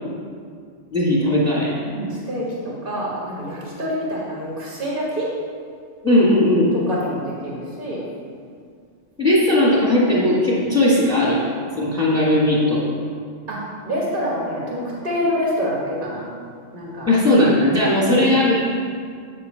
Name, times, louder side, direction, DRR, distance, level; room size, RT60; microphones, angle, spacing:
voice 1, 0.9-1.7 6.0-6.7 9.2-11.4 11.8-12.8 17.1-18.7, left 1 dB, 5° left, -10 dB, 1.5 m, -17 dB
voice 2, 1.8-5.3 6.9-8.1 10.5-10.7 13.5-16.2 16.7-17.1 17.7-17.8 18.1-18.3, equal, 40° right, -5 dB, 1.5 m, -26 dB
8.6 x 3.7 x 5.6 m, 2.2 s
omnidirectional pair, 1.4 m